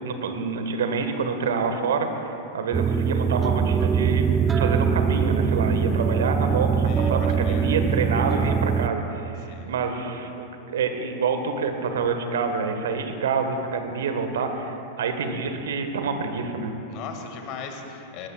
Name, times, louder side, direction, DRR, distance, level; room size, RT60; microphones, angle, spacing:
voice 1, 0.0-4.2 4.5-16.7, right 5 dB, 60° right, 6 dB, 1.5 m, -27 dB
sound 1, 2.7-8.9, right 6 dB, 20° right, 0.5 m, -22 dB
voice 2, 6.9-7.7 9.4-9.7 16.9-18.3, left 6 dB, 40° left, 4 dB, 2.0 m, -38 dB
21.0 x 18.0 x 2.4 m, 2.9 s
figure-of-eight pair, 90°, 0 cm